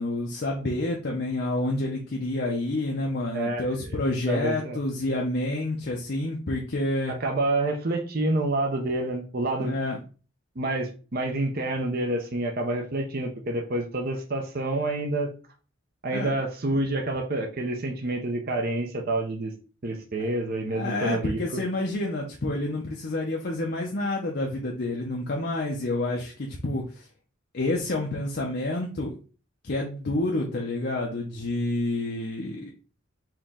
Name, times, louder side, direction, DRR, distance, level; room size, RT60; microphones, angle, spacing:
voice 1, 0.0-7.1 9.6-10.0 16.1-16.3 20.7-27.1 27.5-29.2 29.6-32.7, left 2 dB, 50° left, -1 dB, 0.7 m, -28 dB
voice 2, 3.3-3.7 4.3-4.8 7.2-9.8 10.6-15.3 16.0-19.5 19.8-21.6, right 2 dB, 45° right, 3 dB, 0.7 m, -28 dB
4.4 x 3.0 x 3.7 m, 0.37 s
head